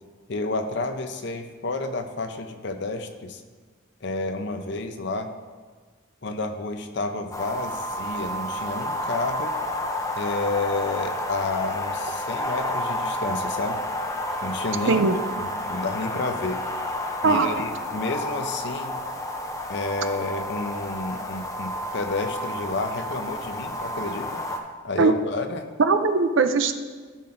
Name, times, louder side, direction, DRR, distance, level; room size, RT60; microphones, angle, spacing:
voice 1, 0.3-3.4 4.0-5.3 6.2-9.5 10.2-13.8 14.4-15.0 15.4-16.6 17.2-19.0 19.7-24.4 24.8-25.7, left 3 dB, 55° left, 7 dB, 0.6 m, -30 dB
sound 1, 7.3-24.6, left 1 dB, 15° left, 0.6 m, -30 dB
voice 2, 14.9-15.2 17.2-17.6 25.0-25.1 25.8-26.8, right 4 dB, 65° right, 9 dB, 0.5 m, -20 dB
14.0 x 5.9 x 2.6 m, 1.5 s
head